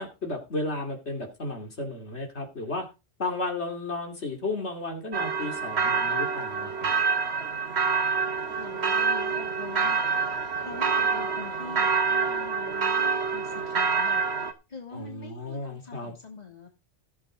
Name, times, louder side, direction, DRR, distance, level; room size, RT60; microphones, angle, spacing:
voice 1, 0.0-2.9 3.2-6.9 14.9-16.1, left 2 dB, 85° left, 3 dB, 3.0 m, -33 dB
sound 1, 5.1-14.5, right 5 dB, 75° right, 1.6 m, -26 dB
voice 2, 8.5-10.0 10.6-16.7, left 4 dB, 40° left, 2 dB, 3.1 m, -44 dB
15.5 x 8.2 x 3.8 m, 0.28 s
omnidirectional pair, 1.1 m